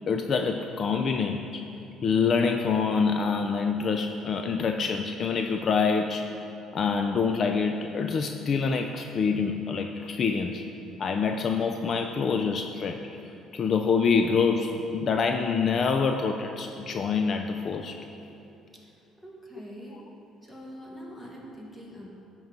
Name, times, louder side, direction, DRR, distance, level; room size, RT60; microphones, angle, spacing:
voice 1, 0.1-1.6 2.0-6.3 6.7-10.6 11.0-13.2 13.5-18.1, left 5 dB, 40° left, 5 dB, 0.3 m, -26 dB
voice 2, 19.2-20.0 20.4-22.2, equal, 10° left, -3 dB, 1.4 m, -44 dB
12.5 x 4.6 x 3.9 m, 2.9 s
cardioid pair, 130°, 0 cm